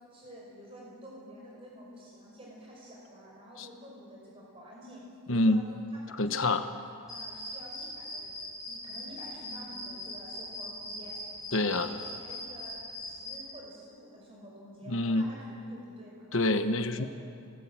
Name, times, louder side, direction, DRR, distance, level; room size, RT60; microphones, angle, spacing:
voice 1, 0.1-5.6 5.9-6.7 7.1-11.2 11.5-16.3 17.0-17.1, equal, 25° right, -4 dB, 5.3 m, -49 dB
voice 2, 5.3-5.6 6.2-6.6 11.5-11.9 14.9-15.3 16.3-17.1, left 2 dB, 60° left, 8 dB, 1.2 m, -26 dB
sound 1, 7.1-13.4, left 2 dB, ahead, 7.2 m, -40 dB
25.0 x 19.5 x 8.8 m, 2.3 s
head